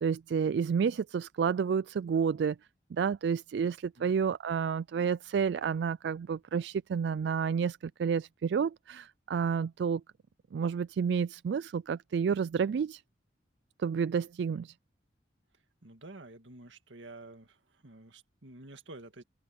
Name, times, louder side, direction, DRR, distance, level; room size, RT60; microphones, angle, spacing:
voice 1, 0.0-2.6 2.9-10.0 10.5-13.0 13.8-14.7, right 6 dB, 65° right, 0.3 m, -30 dB
voice 2, 15.8-19.2, right 2 dB, 85° right, 2.0 m, -50 dB
open air
head